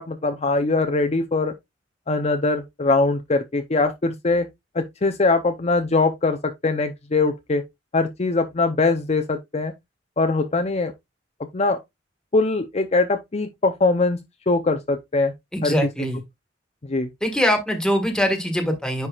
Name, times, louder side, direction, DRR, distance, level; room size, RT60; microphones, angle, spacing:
voice 1, 0.0-1.5 2.1-4.5 4.7-7.6 7.9-9.7 10.2-10.9 11.5-11.8 12.3-14.2 14.5-15.3 15.6-15.7 16.9-17.1, left 3 dB, 40° left, 0.6 m, -22 dB
voice 2, 15.5-16.2 17.2-19.1, equal, 5° left, 1.7 m, -22 dB
9.9 x 4.7 x 2.4 m
head